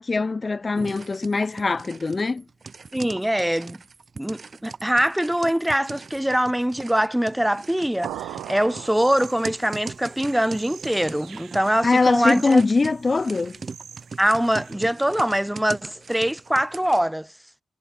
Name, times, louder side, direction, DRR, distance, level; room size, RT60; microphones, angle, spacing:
voice 1, 0.0-2.4 11.8-13.6, left 3 dB, 35° left, 0.8 m, -22 dB
sound 1, 0.8-17.0, right 4 dB, 45° right, 2.6 m, -41 dB
voice 2, 2.9-3.8 4.2-12.6 14.2-17.3, equal, 5° right, 0.8 m, -23 dB
sound 2, 8.0-9.8, right 13 dB, 90° right, 1.5 m, -37 dB
sound 3, 8.8-14.7, right 7 dB, 65° right, 2.1 m, -48 dB
supercardioid pair, 50°, 0 cm